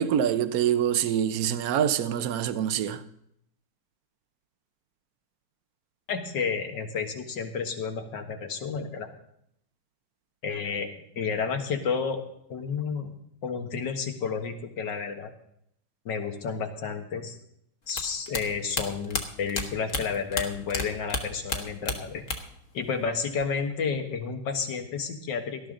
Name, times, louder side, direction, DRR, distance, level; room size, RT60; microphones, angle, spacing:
voice 1, 0.0-3.0, right 9 dB, 60° right, 1.2 m, -25 dB
voice 2, 6.1-9.1 10.4-12.2 12.5-13.1 13.4-15.3 16.1-17.4 17.9-22.2 22.7-25.6, left 5 dB, 75° left, 2.1 m, -31 dB
sound 1, 17.9-20.8 21.1-22.6 22.9-23.6, left 3 dB, 45° left, 1.7 m, -32 dB
18.5 x 12.5 x 3.9 m
omnidirectional pair, 1.9 m